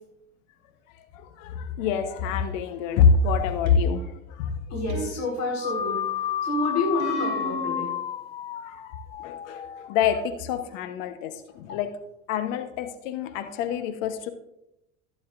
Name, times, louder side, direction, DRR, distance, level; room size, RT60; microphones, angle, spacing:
voice 1, 1.1-4.6 8.6-11.9 12.3-14.3, left 6 dB, 65° left, 9 dB, 1.1 m, -26 dB
sound 1, 3.7-4.1 4.9-5.8 7.0-7.8, right 4 dB, 45° right, 2.6 m, -36 dB
voice 2, 4.7-6.0 6.4-7.9 11.7-11.8, left 2 dB, 40° left, -2 dB, 4.5 m, -29 dB
sound 2, 5.6-10.1, left 9 dB, 15° left, 0.3 m, -31 dB
15.5 x 9.6 x 2.6 m, 0.84 s
hypercardioid pair, 85°, 42 cm